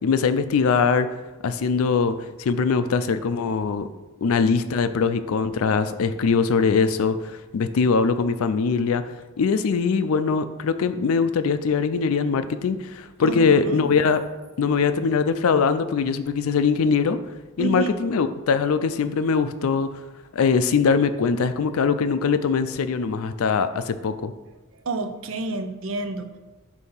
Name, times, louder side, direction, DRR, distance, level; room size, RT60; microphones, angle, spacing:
voice 1, 0.0-1.1 1.4-3.9 4.2-9.0 9.4-14.2 14.6-17.2 17.6-19.9 20.3-24.3, left 5 dB, 80° left, 11 dB, 0.4 m, -22 dB
voice 2, 13.2-13.9 17.6-17.9 24.7-26.4, right 3 dB, 65° right, 8 dB, 0.5 m, -29 dB
7.9 x 2.8 x 5.5 m, 1.2 s
head